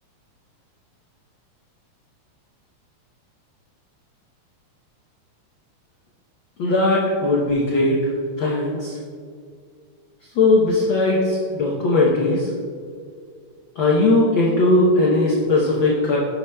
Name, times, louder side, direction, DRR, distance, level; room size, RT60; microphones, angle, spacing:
voice 1, 6.6-9.0 10.3-12.5 13.7-16.2, left 2 dB, 90° left, -4 dB, 1.0 m, -19 dB
11.0 x 6.7 x 2.3 m, 2.1 s
omnidirectional pair, 3.4 m